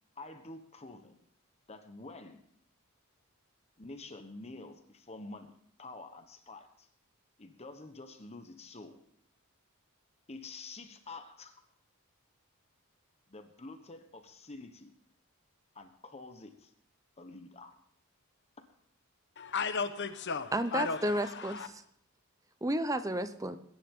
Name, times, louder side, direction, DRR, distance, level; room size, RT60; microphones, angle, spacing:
voice 1, 0.2-1.2 1.7-2.4 3.8-5.5 5.8-6.9 7.4-9.0 10.3-11.6 13.3-14.9 15.7-16.7 17.2-17.8, left 2 dB, 30° left, 1.2 m, -48 dB
voice 2, 19.4-21.7, left 5 dB, 55° left, 1.1 m, -35 dB
voice 3, 20.5-21.8 22.6-23.6, right 1 dB, 15° right, 0.8 m, -32 dB
21.5 x 10.0 x 3.8 m
head